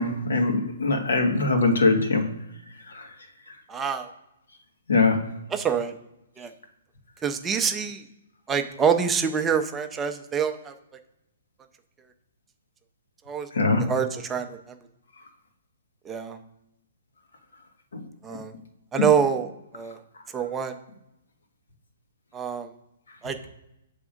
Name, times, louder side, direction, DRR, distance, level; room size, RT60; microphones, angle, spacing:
voice 1, 0.0-2.2 2.9-3.1 4.9-5.2 13.5-13.8 17.9-18.0 18.3-18.4 19.0-19.1, left 3 dB, 90° left, 3 dB, 1.4 m, -22 dB
voice 2, 3.7-4.1 5.5-5.9 6.4-6.5 7.2-8.0 8.5-10.7 13.3-13.5 13.9-14.6 16.1-16.4 18.2-18.5 18.9-19.5 19.7-20.0 20.3-20.8 22.3-22.7 23.2-23.4, right 7 dB, 15° right, 6 dB, 0.5 m, -25 dB
7.4 x 3.5 x 5.0 m, 0.88 s
hypercardioid pair, 155°, 0 cm